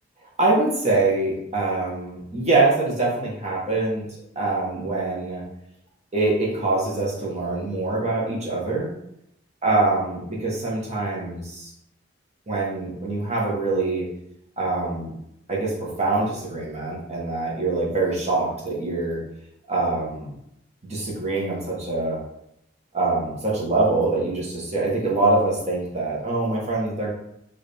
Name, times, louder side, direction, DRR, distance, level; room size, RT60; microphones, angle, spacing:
voice 1, 0.4-4.1 4.3-5.4 6.1-8.9 9.6-11.7 12.5-14.0 14.6-15.1 15.5-19.2 19.7-20.3 20.8-22.2 22.9-27.1, right 2 dB, 35° right, -4 dB, 1.3 m, -24 dB
4.8 x 2.9 x 3.5 m, 0.78 s
head